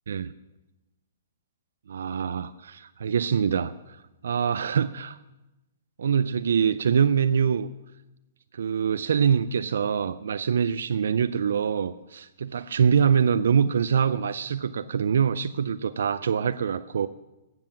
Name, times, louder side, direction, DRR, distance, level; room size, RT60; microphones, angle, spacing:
voice 1, 1.9-4.0 4.2-5.2 6.0-7.7 8.5-17.1, right 7 dB, 80° right, 13 dB, 0.4 m, -24 dB
12.0 x 7.7 x 7.3 m, 1.0 s
hypercardioid pair, 160°, 0 cm